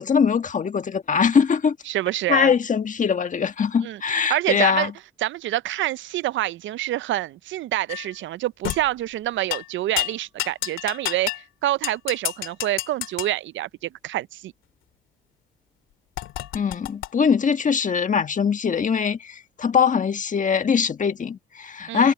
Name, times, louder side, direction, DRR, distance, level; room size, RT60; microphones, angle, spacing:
voice 1, 0.0-1.8 2.3-4.9 16.5-22.1, left 6 dB, 40° left, 1.5 m, -22 dB
voice 2, 1.9-2.5 3.8-4.9 5.2-11.3 11.6-14.5 21.9-22.1, right 14 dB, 70° right, 0.5 m, -27 dB
sound 1, 7.9-8.1 8.6-8.9 9.5-9.7 10.0-11.4 11.8-13.3 16.2-17.1, left 14 dB, 85° left, 2.1 m, -29 dB
cardioid pair, 90°, 20 cm